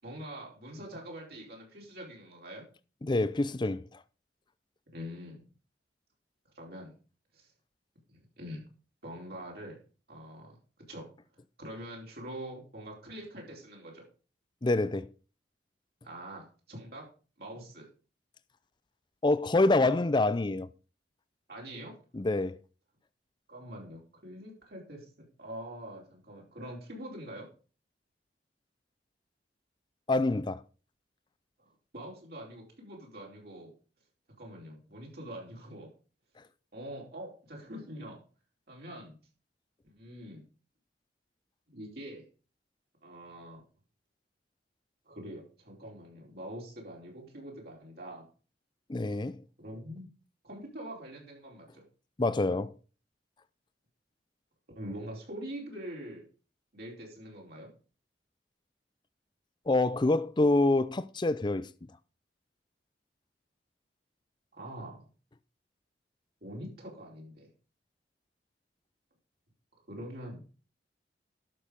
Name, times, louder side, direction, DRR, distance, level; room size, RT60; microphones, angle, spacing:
voice 1, 0.0-2.6 4.9-5.4 6.5-6.9 7.3-7.5 8.1-8.6 9.0-9.8 10.1-10.6 10.9-11.1 11.6-14.0 16.0-17.0 17.4-17.9 21.5-21.9 23.5-25.0 25.4-27.5 31.6-33.7 34.4-35.9 36.7-38.2 38.7-39.1 39.8-40.4 41.7-42.2 43.0-43.6 45.1-48.3 49.6-50.1 50.4-51.8 54.7-56.2 56.7-57.7 64.5-65.1 66.4-67.5 69.9-70.5, right 1 dB, 60° right, 4.4 m, -44 dB
voice 2, 3.0-3.8 14.6-15.1 19.2-20.7 22.1-22.6 30.1-30.6 48.9-49.4 52.2-52.7 59.7-61.7, left 2 dB, 25° left, 0.5 m, -26 dB
12.0 x 6.7 x 5.2 m
head